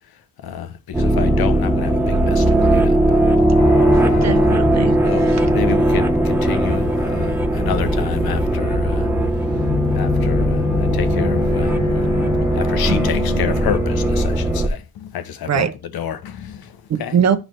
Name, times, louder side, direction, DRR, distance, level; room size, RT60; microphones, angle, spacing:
voice 1, 0.4-3.0 4.0-4.4 5.0-9.1 9.9-12.1 12.5-15.7 15.9-17.2, left 9 dB, 80° left, 0.9 m, -29 dB
sound 1, 0.9-14.7, right 1 dB, 5° right, 0.6 m, -18 dB
sound 2, 3.6-5.8 9.4-14.0, left 7 dB, 45° left, 1.3 m, -26 dB
voice 2, 4.2-5.5 12.9-13.0 15.5-15.7 16.9-17.4, right 8 dB, 50° right, 0.6 m, -21 dB
10.5 x 3.9 x 3.1 m
wide cardioid pair, 180°, 36 cm